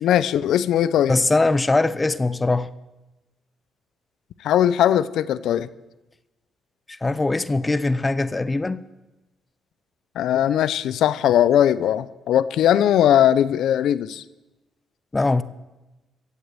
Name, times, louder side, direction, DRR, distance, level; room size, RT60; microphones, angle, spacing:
voice 1, 0.0-1.1 4.4-5.7 10.2-14.2, left 10 dB, 80° left, 0.5 m, -19 dB
voice 2, 1.1-2.7 6.9-8.8 15.1-15.4, left 2 dB, 20° left, 0.6 m, -21 dB
14.5 x 8.3 x 7.6 m
cardioid pair, 90°, 0 cm